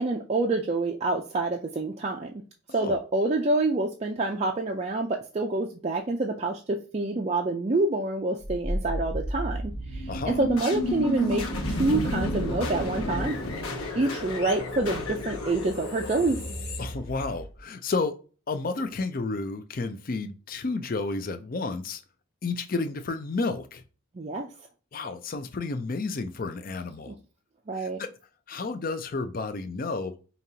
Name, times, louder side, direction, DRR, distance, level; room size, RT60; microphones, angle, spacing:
voice 1, 0.0-2.3 2.7-10.1 10.4-13.4 14.0-16.4 24.2-24.5 27.1-27.2 27.7-28.0, right 2 dB, 30° right, 0.4 m, -27 dB
sound 1, 8.4-17.6, left 1 dB, 90° left, 1.2 m, -31 dB
voice 2, 10.1-10.4 14.0-14.1 16.8-18.2 18.5-22.0 22.4-23.8 24.9-27.1 27.8-28.1 28.5-30.1, left 3 dB, 40° left, 0.4 m, -31 dB
5.2 x 2.8 x 2.7 m
head